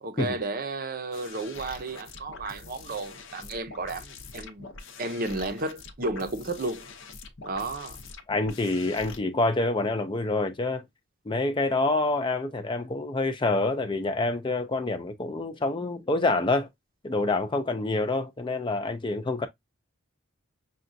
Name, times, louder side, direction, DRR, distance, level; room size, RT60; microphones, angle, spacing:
voice 1, 0.0-4.7 5.0-6.9 7.4-8.0, right 2 dB, 45° right, 0.6 m, -33 dB
sound 1, 1.1-9.2, left 4 dB, 60° left, 0.7 m, -45 dB
voice 2, 8.3-10.8 11.3-16.7 17.0-19.5, left 2 dB, 25° left, 0.4 m, -27 dB
6.0 x 2.3 x 2.6 m
head